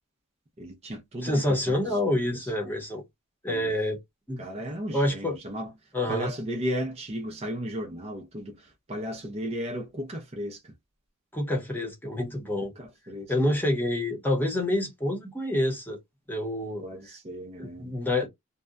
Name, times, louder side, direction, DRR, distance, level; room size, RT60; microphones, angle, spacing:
voice 1, 0.6-2.0 2.3-2.5 3.5-3.7 4.4-5.7 6.1-10.7 12.8-13.3 16.8-17.9, equal, 30° right, 0.6 m, -35 dB
voice 2, 1.2-3.0 3.4-4.0 4.3-4.4 4.9-5.4 5.9-6.3 11.3-12.7 13.3-16.0 16.3-16.8 17.6-18.3, left 1 dB, 10° left, 0.9 m, -27 dB
2.7 x 2.2 x 2.3 m
head